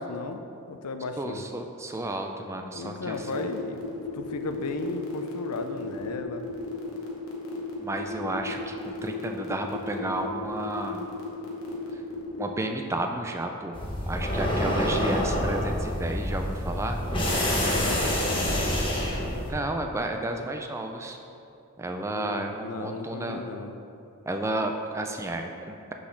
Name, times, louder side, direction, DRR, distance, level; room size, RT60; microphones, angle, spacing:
voice 1, 0.0-1.4 2.7-3.8 4.1-6.5 17.7-18.7 22.1-23.8, left 3 dB, 85° left, 7 dB, 0.5 m, -35 dB
voice 2, 1.2-3.5 7.8-11.1 11.9-12.0 12.4-13.8 14.1-17.0 19.5-21.2 21.8-23.4 24.3-25.9, right 1 dB, 10° right, 4 dB, 0.3 m, -32 dB
sound 1, 3.1-12.5, left 2 dB, 65° left, 1.1 m, -36 dB
sound 2, 13.7-19.5, left 1 dB, 25° left, 0.9 m, -27 dB
6.2 x 3.9 x 5.8 m, 2.7 s
head